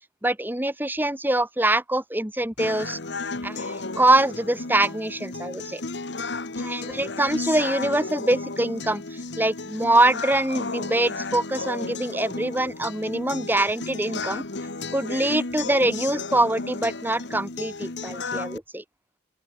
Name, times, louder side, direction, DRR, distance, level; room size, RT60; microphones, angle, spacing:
voice 1, 0.2-3.0 3.4-5.8 6.6-14.4 14.9-18.8, right 1 dB, 10° right, 1.7 m, -24 dB
sound 1, 2.6-18.6, left 3 dB, 65° left, 1.4 m, -33 dB
open air
head